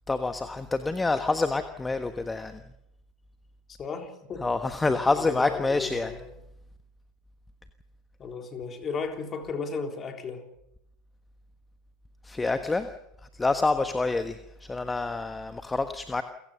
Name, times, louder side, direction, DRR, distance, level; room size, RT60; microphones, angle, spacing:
voice 1, 0.1-2.6 4.4-6.1 12.2-12.9 13.3-16.2, left 3 dB, 15° left, 1.3 m, -27 dB
voice 2, 3.8-4.5 5.1-6.4 8.2-10.5, left 5 dB, 30° left, 3.8 m, -35 dB
29.0 x 16.5 x 6.8 m
figure-of-eight pair, 80°, 0 cm